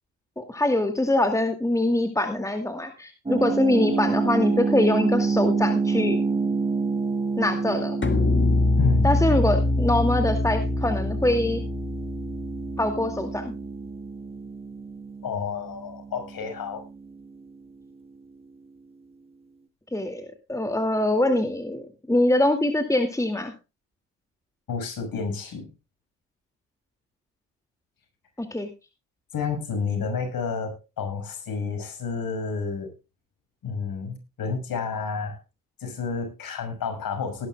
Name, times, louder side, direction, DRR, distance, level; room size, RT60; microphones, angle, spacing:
voice 1, 0.4-6.2 7.4-8.0 9.0-11.6 12.8-13.5 19.9-23.5 28.4-28.7, left 1 dB, 10° left, 6 dB, 2.3 m, -24 dB
sound 1, 3.3-18.0, right 4 dB, 15° right, 1.7 m, -29 dB
sound 2, 8.0-13.3, left 2 dB, 30° left, 2.2 m, -24 dB
voice 2, 15.2-16.8 24.7-25.7 29.3-32.9 33.6-35.4 35.8-37.5, left 5 dB, 60° left, 5 dB, 6.2 m, -30 dB
18.5 x 11.0 x 2.3 m, 0.27 s
hypercardioid pair, 55°, 39 cm